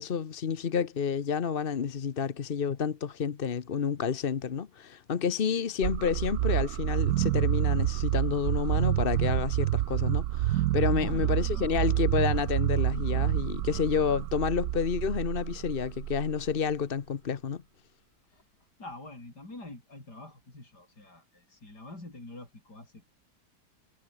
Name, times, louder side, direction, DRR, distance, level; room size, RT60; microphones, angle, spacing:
voice 1, 0.0-17.6, left 7 dB, 40° left, 0.9 m, -30 dB
sound 1, 5.8-16.7, right 14 dB, 70° right, 1.1 m, -28 dB
voice 2, 10.9-12.0 12.8-13.1 18.2-23.0, left 2 dB, 75° left, 8.1 m, -45 dB
omnidirectional pair, 1.8 m